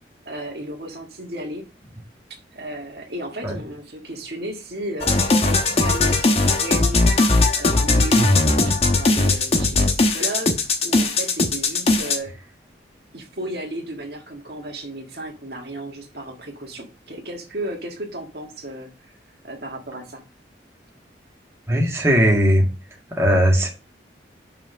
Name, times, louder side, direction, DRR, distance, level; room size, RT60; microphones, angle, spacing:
voice 1, 0.2-1.6 2.5-7.2 7.6-12.3 13.1-19.1 19.4-20.2, right 1 dB, 60° right, 1 dB, 1.6 m, -34 dB
sound 1, 5.0-12.2, left 2 dB, 35° left, 1.1 m, -19 dB
voice 2, 21.7-22.7 23.1-23.7, equal, 15° right, -1 dB, 1.8 m, -18 dB
5.8 x 4.9 x 6.0 m, 0.30 s
head